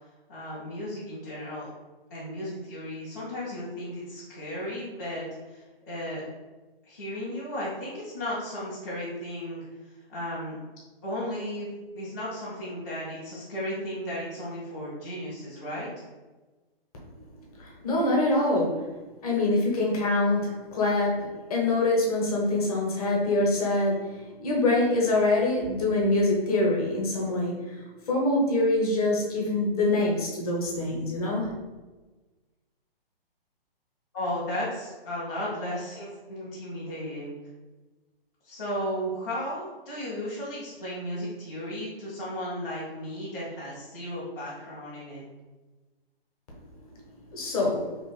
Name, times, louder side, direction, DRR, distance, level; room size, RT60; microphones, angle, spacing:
voice 1, 0.3-1.7 2.1-6.2 6.8-9.6 10.1-10.6 11.0-11.7 11.9-15.9 34.1-37.4 38.4-45.2, equal, 20° left, -11 dB, 0.5 m, -35 dB
voice 2, 17.6-18.8 19.2-24.1 24.4-27.7 28.1-31.5 47.3-47.9, left 2 dB, 35° left, -2 dB, 0.9 m, -25 dB
2.9 x 2.4 x 4.2 m, 1.2 s
hypercardioid pair, 165°, 30 cm